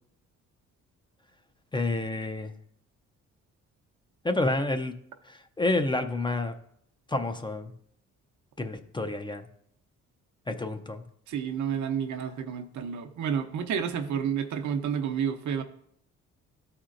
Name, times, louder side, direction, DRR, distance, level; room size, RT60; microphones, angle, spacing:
voice 1, 1.7-2.5 4.2-4.9 5.3-6.5 7.1-7.7 8.6-9.4 10.5-11.0, left 2 dB, 15° left, 7 dB, 0.5 m, -29 dB
voice 2, 11.3-15.6, right 7 dB, 70° right, 6 dB, 0.8 m, -30 dB
12.5 x 4.4 x 2.5 m, 0.70 s
cardioid pair, 90°, 30 cm